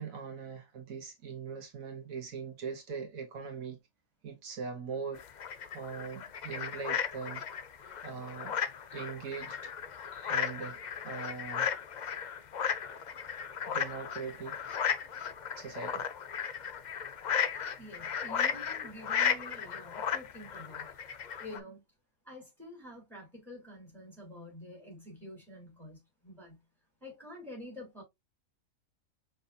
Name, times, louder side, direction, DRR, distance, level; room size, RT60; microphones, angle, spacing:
voice 1, 0.0-3.8 4.2-5.2 5.5-7.5 7.8-8.6 8.9-9.7 10.1-11.7 13.7-14.6 15.6-16.1, right 5 dB, 80° right, 1.4 m, -41 dB
sound 1, 5.2-21.6, left 7 dB, 65° left, 0.4 m, -35 dB
voice 2, 17.8-20.9 21.4-21.8 22.2-26.6 27.0-28.0, left 1 dB, ahead, 3.5 m, -48 dB
5.6 x 3.4 x 2.6 m
omnidirectional pair, 1.5 m